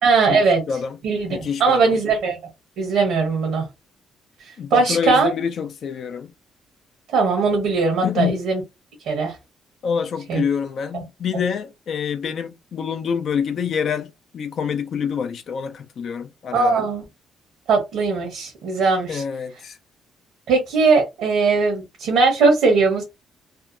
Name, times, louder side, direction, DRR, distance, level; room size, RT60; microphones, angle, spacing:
voice 1, 0.0-0.6 1.0-2.4 2.8-3.6 4.4-5.3 7.1-8.6 9.1-9.3 10.3-10.4 10.9-11.0 16.5-17.0 17.7-19.2 20.5-23.0, right 4 dB, 85° right, 1.0 m, -19 dB
voice 2, 0.7-1.0 1.3-1.9 4.6-6.3 8.0-8.4 9.8-16.8 19.1-19.8, left 7 dB, 60° left, 0.4 m, -26 dB
2.8 x 2.2 x 2.5 m
cardioid pair, 90°, 0 cm